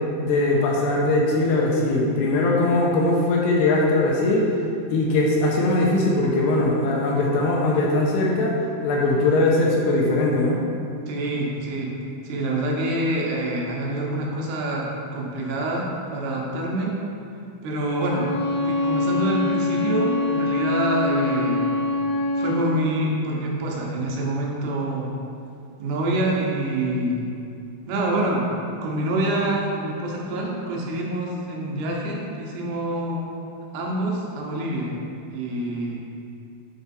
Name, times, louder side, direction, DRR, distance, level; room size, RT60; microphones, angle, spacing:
voice 1, 0.2-4.5 4.9-8.6 8.8-10.6, left 2 dB, 80° left, -2 dB, 2.5 m, -20 dB
voice 2, 11.1-12.0 12.2-17.0 17.6-21.7 22.3-25.1 25.8-27.2 27.9-28.5 28.8-33.2 33.7-35.0 35.3-36.0, right 1 dB, 80° right, -2 dB, 2.7 m, -26 dB
Bowed string instrument, 17.9-22.7, left 2 dB, 55° left, 1.3 m, -24 dB
7.1 x 4.3 x 4.1 m, 2.5 s
omnidirectional pair, 4.7 m